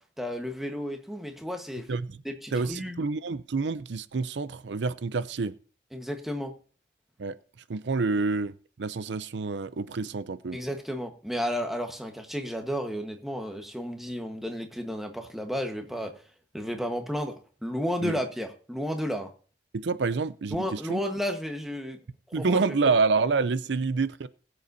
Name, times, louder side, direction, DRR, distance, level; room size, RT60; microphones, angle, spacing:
voice 1, 0.2-1.9 2.2-3.0 5.9-6.5 10.5-16.1 16.5-19.3 20.5-22.0 22.3-23.0, equal, ahead, 1.3 m, -32 dB
voice 2, 1.9-2.2 2.5-5.5 7.2-7.4 7.7-8.5 8.8-10.6 18.0-18.2 19.7-21.0 22.3-24.3, right 4 dB, 80° right, 0.5 m, -27 dB
21.5 x 7.9 x 2.7 m
head